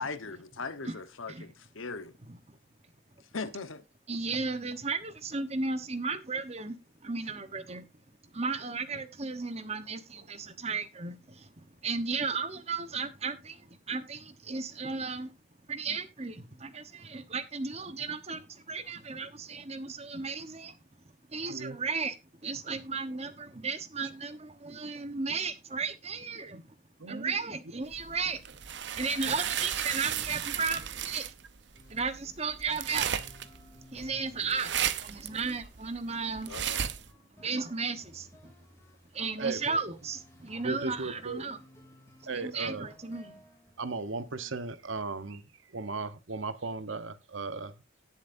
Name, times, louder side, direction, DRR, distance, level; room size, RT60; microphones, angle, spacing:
voice 1, 0.0-2.1 3.3-3.8 36.5-36.9, left 4 dB, 85° left, 1.1 m, -39 dB
voice 2, 4.1-7.9 8.3-15.3 15.7-20.8 21.3-22.2 22.4-26.6 27.1-28.4 29.0-31.3 31.9-33.1 33.9-36.5 37.4-38.5 39.1-41.6 42.3-43.4, right 4 dB, 30° right, 1.1 m, -35 dB
voice 3, 27.0-27.3 39.4-39.8 40.6-41.5 42.3-42.9 43.8-45.4 45.7-47.7, right 4 dB, 75° right, 1.1 m, -36 dB
sound 1, 27.9-37.1, right 9 dB, 60° right, 0.7 m, -35 dB
sound 2, 31.7-45.0, left 1 dB, 15° left, 2.8 m, -58 dB
18.0 x 7.3 x 2.6 m
head